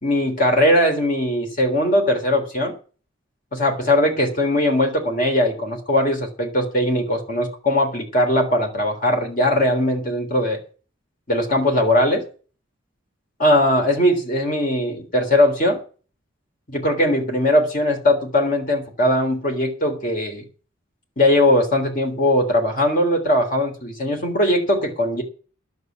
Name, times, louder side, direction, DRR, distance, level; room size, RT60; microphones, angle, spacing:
voice 1, 0.0-2.7 3.5-10.6 11.3-12.2 13.4-15.8 16.7-20.4 21.2-25.2, left 1 dB, 40° left, 3 dB, 3.5 m, -20 dB
11.0 x 6.8 x 9.5 m, 0.39 s
head